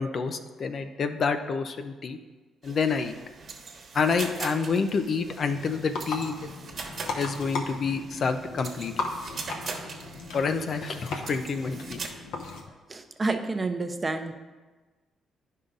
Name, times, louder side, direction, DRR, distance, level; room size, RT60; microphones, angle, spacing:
voice 1, 0.0-2.2 2.6-3.2 3.9-6.5 7.1-8.9 10.3-12.0, left 5 dB, 50° left, 8 dB, 0.6 m, -28 dB
sound 1, 2.6-12.1, right 4 dB, 55° right, 1.2 m, -41 dB
sound 2, 5.5-12.6, left 3 dB, 85° left, 0.9 m, -37 dB
voice 2, 12.9-14.3, right 3 dB, 25° right, 6 dB, 0.7 m, -29 dB
9.8 x 5.6 x 3.9 m, 1.3 s
cardioid pair, 90°, 0 cm